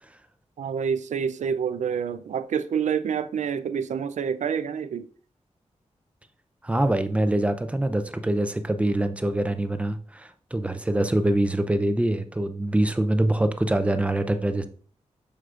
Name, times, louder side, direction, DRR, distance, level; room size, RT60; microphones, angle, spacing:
voice 1, 0.6-5.1 8.3-8.4, right 7 dB, 85° right, 0.5 m, -27 dB
voice 2, 6.6-14.6, right 1 dB, 10° right, 0.5 m, -24 dB
7.8 x 6.4 x 2.5 m
wide cardioid pair, 145°, 12 cm